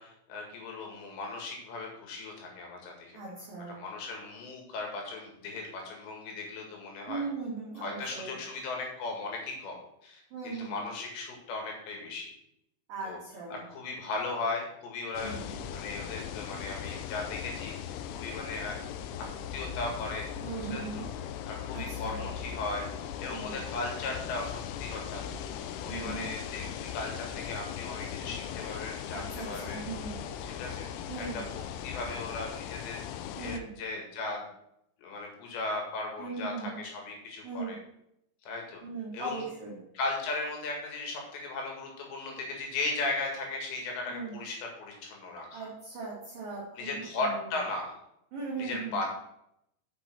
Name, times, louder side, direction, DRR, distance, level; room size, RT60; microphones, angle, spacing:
voice 1, 0.0-3.1 3.7-7.2 7.8-12.3 13.0-13.2 13.5-18.8 19.2-19.3 19.5-21.1 21.5-25.3 25.8-30.1 30.4-30.9 31.1-34.4 35.0-37.8 38.4-38.8 39.1-39.5 39.9-45.7 46.8-48.0 48.6-49.1, left 3 dB, 65° left, 1 dB, 4.0 m, -37 dB
voice 2, 3.1-3.8 7.1-8.3 10.3-10.7 12.9-13.6 15.2-15.6 20.4-21.1 21.7-22.2 23.3-23.7 25.9-26.3 29.1-30.2 31.1-31.4 33.4-33.7 36.2-36.7 37.4-37.8 38.8-39.8 44.1-44.3 45.5-47.0 48.3-49.0, right 4 dB, 55° right, -5 dB, 2.9 m, -38 dB
sound 1, 15.1-33.6, left 9 dB, 80° left, 3.0 m, -39 dB
8.4 x 6.0 x 6.0 m, 0.78 s
omnidirectional pair, 5.8 m